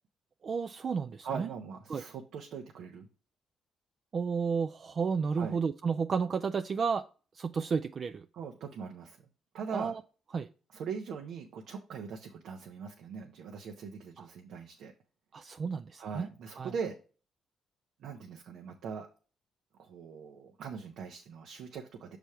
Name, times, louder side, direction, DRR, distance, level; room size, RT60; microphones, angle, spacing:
voice 1, 0.4-1.5 1.9-2.0 4.1-7.0 7.3-8.3 9.7-10.0 10.3-10.5 14.2-14.3 15.3-16.3 16.6-16.7, right 5 dB, 45° right, 9 dB, 0.3 m, -32 dB
voice 2, 1.2-3.1 5.3-5.6 8.3-9.2 9.5-9.9 10.7-14.9 16.0-17.0 18.0-19.1 19.8-22.2, right 6 dB, 75° right, 2 dB, 0.8 m, -41 dB
6.1 x 3.4 x 5.6 m, 0.37 s
cardioid pair, 90°, 0 cm